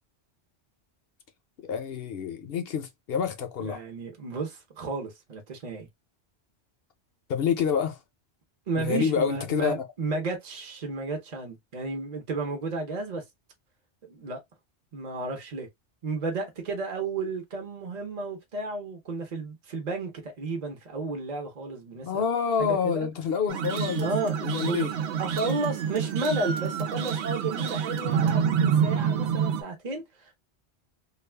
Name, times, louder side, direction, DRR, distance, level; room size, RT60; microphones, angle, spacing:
voice 1, 1.6-3.8 7.3-8.0 8.7-9.8 22.0-24.1 24.4-24.9, left 7 dB, 65° left, 0.8 m, -27 dB
voice 2, 3.7-5.9 8.7-13.2 14.1-14.4 14.9-15.7 16.0-22.2 22.6-23.1 24.0-24.3 24.7-24.9 25.2-30.4, right 3 dB, 40° right, 0.8 m, -32 dB
sound 1, 23.5-29.6, right 7 dB, 80° right, 0.9 m, -27 dB
2.4 x 2.3 x 3.3 m
omnidirectional pair, 1.1 m